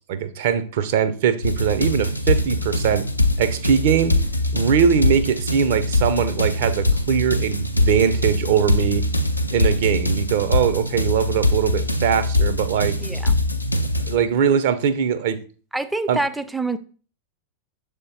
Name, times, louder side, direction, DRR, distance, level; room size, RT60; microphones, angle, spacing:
voice 1, 0.1-3.0 3.4-4.2 4.5-9.0 9.5-13.0 14.1-15.4 16.1-16.2, right 8 dB, 55° right, 11 dB, 0.6 m, -21 dB
sound 1, 1.4-14.2, left 1 dB, 85° left, 0.5 m, -22 dB
voice 2, 13.0-13.4 15.7-16.8, right 2 dB, 5° right, 12 dB, 0.4 m, -26 dB
6.7 x 3.5 x 4.2 m, 0.40 s
figure-of-eight pair, 90°, 0 cm